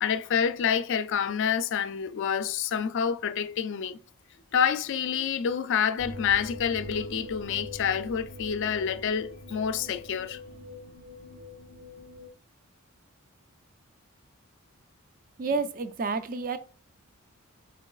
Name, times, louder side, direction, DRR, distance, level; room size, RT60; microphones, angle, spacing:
voice 1, 0.0-4.0 4.5-10.4, left 7 dB, 60° left, 0.3 m, -28 dB
sound 1, 6.0-12.3, left 2 dB, 75° right, 1.2 m, -43 dB
voice 2, 15.4-16.6, right 4 dB, 40° right, 0.4 m, -29 dB
4.5 x 3.9 x 2.3 m
head